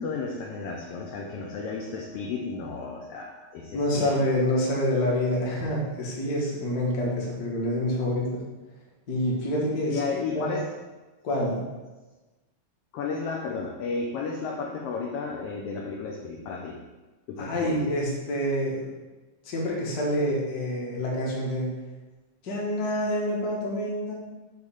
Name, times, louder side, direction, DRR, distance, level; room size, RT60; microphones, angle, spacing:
voice 1, 0.0-4.1 9.9-10.7 12.9-16.8 17.3-17.8, left 4 dB, 75° left, 0 dB, 1.4 m, -33 dB
voice 2, 3.7-8.4 9.1-10.6 11.2-11.6 17.4-19.0 19.4-21.7 22.4-24.1, left 1 dB, 45° left, -3 dB, 1.4 m, -27 dB
6.9 x 3.1 x 5.5 m, 1.2 s
omnidirectional pair, 3.3 m